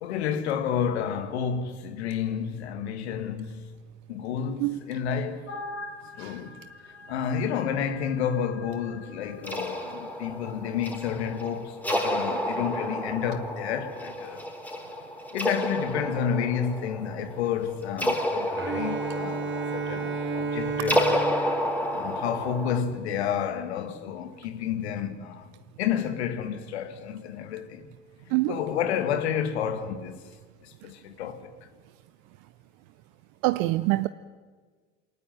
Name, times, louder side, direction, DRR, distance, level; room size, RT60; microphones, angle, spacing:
voice 1, 0.0-3.7 4.1-5.5 6.2-6.6 7.1-14.5 15.3-21.3 21.9-25.5 25.8-27.9 28.5-30.2 30.6-31.5, left 8 dB, 85° left, 1.9 m, -30 dB
sound 1, 5.5-9.9, left 2 dB, 45° left, 5.7 m, -43 dB
sound 2, 9.4-22.8, equal, 5° left, 4.1 m, -31 dB
Bowed string instrument, 18.5-22.6, right 4 dB, 35° right, 3.2 m, -32 dB
voice 2, 33.4-34.1, right 20 dB, 65° right, 0.7 m, -24 dB
22.0 x 19.0 x 9.1 m
hypercardioid pair, 70°, 32 cm